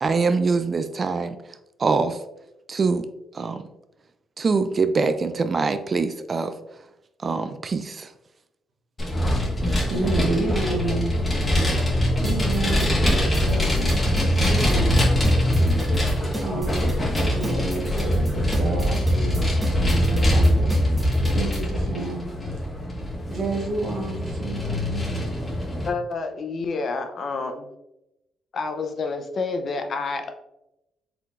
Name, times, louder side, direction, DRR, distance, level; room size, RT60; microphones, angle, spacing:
voice 1, 0.0-1.4 1.8-2.2 2.7-3.7 4.4-6.5 7.2-8.1, right 4 dB, 35° right, 10 dB, 0.3 m, -24 dB
Vehicle, 9.0-25.9, left 1 dB, 25° left, 1.4 m, -23 dB
voice 2, 9.8-11.2 12.2-15.0 16.4-22.2 23.3-25.1, right 3 dB, 70° right, -2 dB, 1.1 m, -30 dB
sound 1, 12.2-21.6, right 1 dB, 20° right, 1.2 m, -33 dB
voice 3, 25.8-27.7 28.5-30.3, left 4 dB, 50° left, 6 dB, 0.6 m, -29 dB
4.7 x 3.7 x 2.5 m, 0.88 s
cardioid pair, 90°, 0 cm